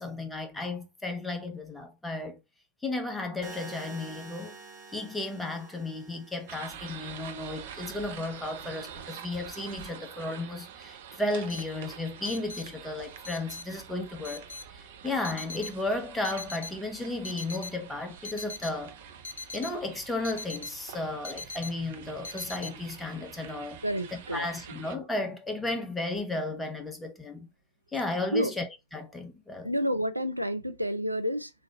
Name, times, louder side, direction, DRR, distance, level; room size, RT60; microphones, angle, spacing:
voice 1, 0.0-2.4 2.8-4.5 4.9-19.0 19.5-23.8 24.1-27.5 27.9-29.7, left 2 dB, 10° left, 1.0 m, -34 dB
sound 1, 3.4-7.4, right 3 dB, 40° right, 1.4 m, -47 dB
sound 2, 6.5-24.9, right 8 dB, 55° right, 0.7 m, -46 dB
sound 3, 11.5-22.7, left 3 dB, 70° left, 0.5 m, -42 dB
voice 2, 23.8-24.5 28.3-28.5 29.6-31.5, equal, 90° right, 0.4 m, -29 dB
3.7 x 3.2 x 3.7 m
figure-of-eight pair, 90°, 0 cm